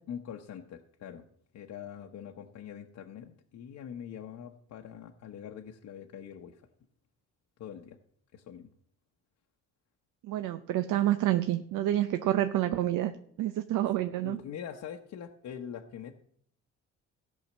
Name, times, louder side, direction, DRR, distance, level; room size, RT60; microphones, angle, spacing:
voice 1, 0.1-1.2 1.5-6.7 7.6-8.0 8.3-8.7 14.2-16.1, left 8 dB, 70° left, 3 dB, 0.9 m, -43 dB
voice 2, 10.2-13.1 13.4-14.4, right 13 dB, 90° right, 9 dB, 0.7 m, -28 dB
15.5 x 5.6 x 7.4 m, 0.68 s
cardioid pair, 90°, 30 cm